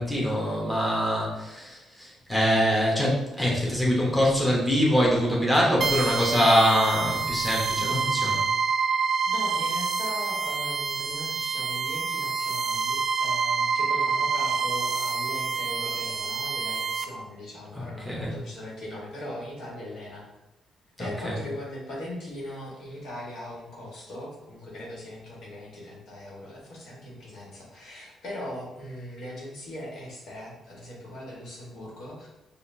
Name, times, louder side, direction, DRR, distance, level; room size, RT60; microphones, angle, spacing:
voice 1, 0.0-8.4 17.8-18.4 21.0-21.4, equal, 5° left, -4 dB, 1.1 m, -24 dB
sound 1, 5.8-17.0, right 5 dB, 40° right, 0.4 m, -27 dB
voice 2, 9.3-20.2 21.0-32.3, left 1 dB, 70° left, -4 dB, 1.5 m, -39 dB
5.0 x 2.5 x 2.7 m, 0.98 s
cardioid pair, 90°, 0 cm